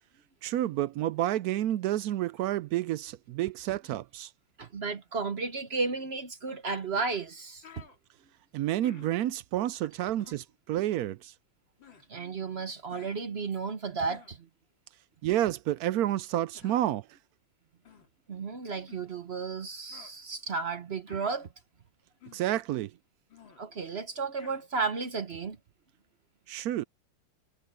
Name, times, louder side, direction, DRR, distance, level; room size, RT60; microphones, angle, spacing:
voice 1, 0.4-4.3 8.5-11.3 15.2-17.0 22.3-22.9 26.5-26.8, right 13 dB, 75° right, 0.9 m, -29 dB
voice 2, 4.6-7.9 12.1-14.5 18.3-21.5 23.6-25.6, right 4 dB, 45° right, 0.9 m, -33 dB
sound 1, 6.5-6.6 7.3-7.4 7.6-8.0 8.8-9.3 10.2-10.5 11.8-12.1 12.9-13.2 14.1-14.4 15.2-15.6 16.5-16.9 17.8-18.1 18.9-19.1 19.9-20.1 21.1-21.4 22.2-22.5 23.3-23.6 24.4-24.6, left 8 dB, 85° left, 3.6 m, -53 dB
omnidirectional pair, 2.0 m